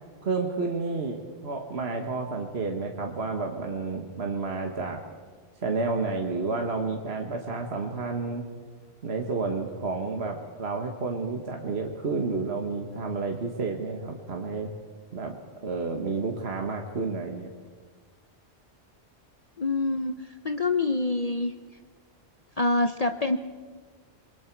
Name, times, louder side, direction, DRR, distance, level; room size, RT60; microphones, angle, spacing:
voice 1, 0.2-5.0 5.6-8.4 9.0-14.7 15.1-15.3 15.6-17.5, right 4 dB, 65° right, 2 dB, 1.7 m, -30 dB
voice 2, 19.6-21.5 22.6-23.4, left 2 dB, 40° left, 7 dB, 0.8 m, -26 dB
27.5 x 22.5 x 4.6 m, 1.5 s
omnidirectional pair, 1.2 m